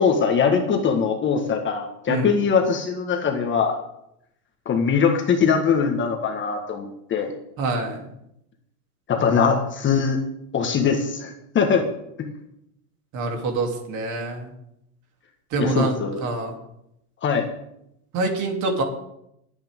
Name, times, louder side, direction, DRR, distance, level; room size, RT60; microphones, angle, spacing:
voice 1, 0.0-3.8 4.6-7.3 9.1-10.2 10.5-11.8 15.6-16.2 17.2-17.5, left 6 dB, 25° left, 3 dB, 1.7 m, -21 dB
voice 2, 2.1-2.4 7.6-8.1 13.1-14.5 15.5-16.6 18.1-18.8, right 3 dB, 40° right, 3 dB, 3.3 m, -26 dB
22.5 x 8.9 x 3.8 m, 0.79 s
supercardioid pair, 125°, 44 cm